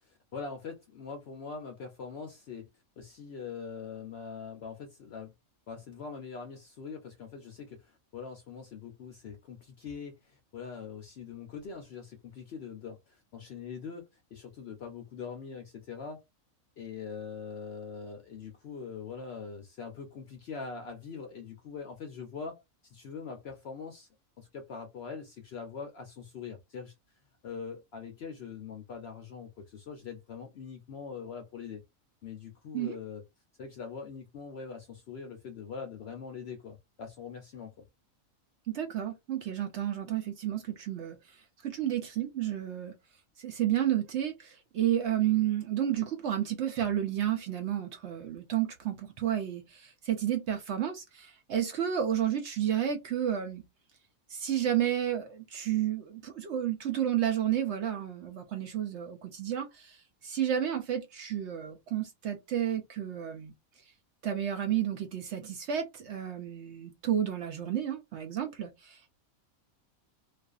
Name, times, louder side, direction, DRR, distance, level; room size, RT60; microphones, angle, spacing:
voice 1, 0.0-2.7 3.0-5.3 5.7-16.2 16.8-24.1 24.4-26.9 27.4-31.8 32.2-33.2 33.6-37.9, left 5 dB, 65° left, 0.6 m, -43 dB
voice 2, 38.7-43.0 43.4-53.6 54.3-63.5 64.2-69.1, right 10 dB, 65° right, 0.7 m, -31 dB
2.4 x 2.4 x 2.3 m
omnidirectional pair, 1.5 m